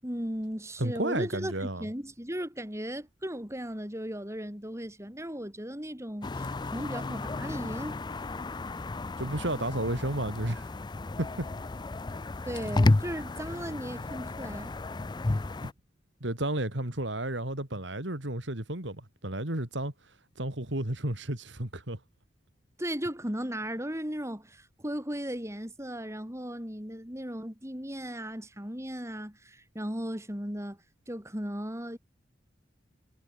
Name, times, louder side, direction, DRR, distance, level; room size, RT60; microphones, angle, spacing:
voice 1, 0.0-8.0 12.5-14.7 22.8-30.8 31.1-32.0, equal, 15° right, 7.2 m, -36 dB
voice 2, 0.8-1.9 9.2-10.8 11.2-11.5 15.6-15.7 16.2-19.9 20.4-22.0, right 1 dB, 70° right, 3.3 m, -32 dB
sound 1, 6.2-15.7, left 2 dB, 25° left, 0.5 m, -32 dB
head